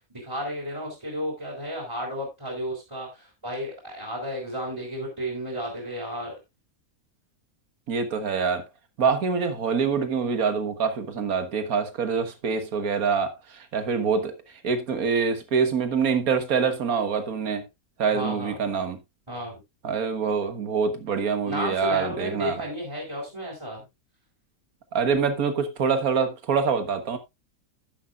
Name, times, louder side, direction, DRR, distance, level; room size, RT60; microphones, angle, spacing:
voice 1, 0.1-6.3 18.1-18.5 19.3-19.6 21.5-23.8, equal, 20° right, 3.7 m, -33 dB
voice 2, 7.9-8.6 9.0-14.3 14.6-17.6 18.0-19.0 19.8-22.6 24.9-27.2, right 5 dB, 90° right, 1.8 m, -25 dB
11.0 x 9.8 x 2.4 m
omnidirectional pair, 1.5 m